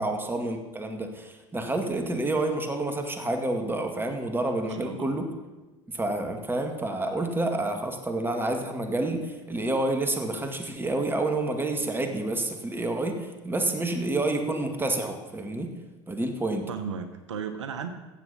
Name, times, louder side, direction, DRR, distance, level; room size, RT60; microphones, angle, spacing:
voice 1, 0.0-5.3 5.9-15.7 16.1-16.7, right 2 dB, 15° right, 5 dB, 2.1 m, -29 dB
voice 2, 4.7-5.1 16.7-17.9, right 6 dB, 85° right, 9 dB, 0.9 m, -35 dB
15.5 x 7.5 x 5.8 m, 1.2 s
hypercardioid pair, 80°, 15 cm